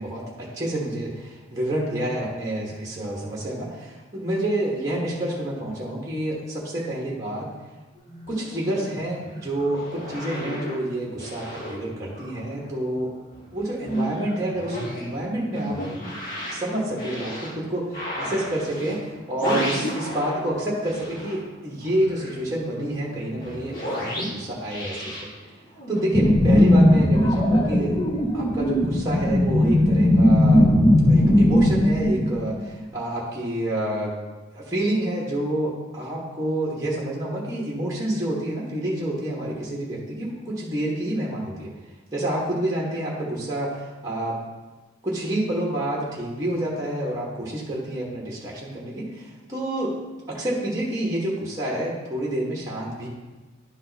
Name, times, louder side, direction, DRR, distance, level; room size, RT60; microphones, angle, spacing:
voice 1, 0.0-7.5 8.3-13.1 13.5-15.8 16.5-25.3 25.9-27.9 28.3-30.7 31.0-34.1 34.5-41.7 42.1-44.4 45.0-49.9 50.3-53.1, right 1 dB, 15° right, -5 dB, 1.4 m, -28 dB
sound 1, 7.9-12.6 12.9-20.5 20.8-26.0, equal, 45° left, 2.7 m, -33 dB
sound 2, 26.1-32.9, left 1 dB, 25° left, 0.5 m, -18 dB
11.0 x 3.8 x 4.1 m, 1.2 s
head